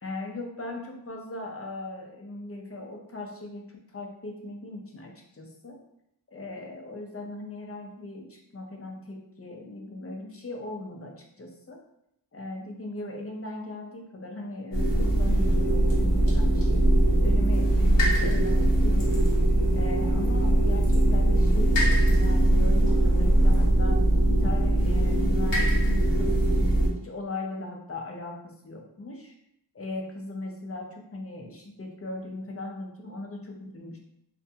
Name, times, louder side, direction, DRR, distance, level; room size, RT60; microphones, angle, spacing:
voice 1, 0.0-5.8 6.3-11.8 12.3-16.9 17.2-19.3 19.7-24.0 24.3-26.4 27.0-29.4 29.7-34.0, left 2 dB, 30° left, 1 dB, 0.5 m, -39 dB
sound 1, 14.7-26.9, right 1 dB, 70° left, 1.0 m, -21 dB
2.5 x 2.3 x 2.7 m, 0.78 s
wide cardioid pair, 45°, 46 cm